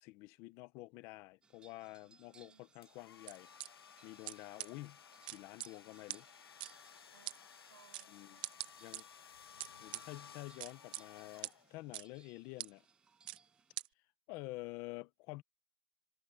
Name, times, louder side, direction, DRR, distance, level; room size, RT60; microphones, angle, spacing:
voice 1, 0.0-5.0 5.3-6.3 8.1-8.4 8.8-9.1 9.8-12.8 14.3-15.4, left 21 dB, 20° left, 0.7 m, -49 dB
sound 1, 1.4-13.8, right 5 dB, 5° right, 4.6 m, -68 dB
voice 2, 1.8-2.6 7.1-9.0, right 9 dB, 65° right, 4.0 m, -68 dB
sound 2, 2.8-12.0, left 7 dB, 85° left, 1.1 m, -58 dB
sound 3, 3.3-3.7 4.3-4.4 4.6-4.7 5.3-5.7 6.1-6.2 6.6-6.7 7.3-7.4 7.9-8.1 8.4-9.0 9.6-10.0 10.6-11.0 11.4-11.5 11.9-12.0 12.6-12.7 13.3-13.4 13.8-13.9, right 18 dB, 25° right, 0.4 m, -42 dB
hypercardioid pair, 170°, 12 cm